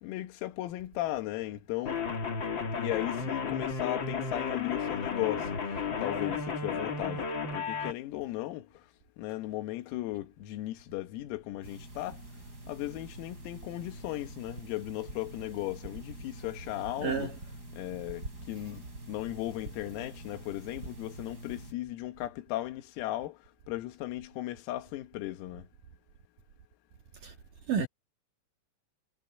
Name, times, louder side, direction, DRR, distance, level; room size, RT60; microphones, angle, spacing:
voice 1, 0.0-2.0 2.8-5.5 6.0-8.7 9.2-12.2 12.7-17.3 17.8-23.4 23.7-25.7, left 16 dB, 85° left, 4.1 m, -36 dB
sound 1, 1.8-7.9, left 5 dB, 45° left, 1.6 m, -33 dB
sound 2, 11.6-21.7, right 1 dB, 15° right, 8.3 m, -46 dB
voice 2, 17.0-17.3 27.2-27.3 27.7-27.9, right 6 dB, 55° right, 2.8 m, -30 dB
omnidirectional pair, 6.0 m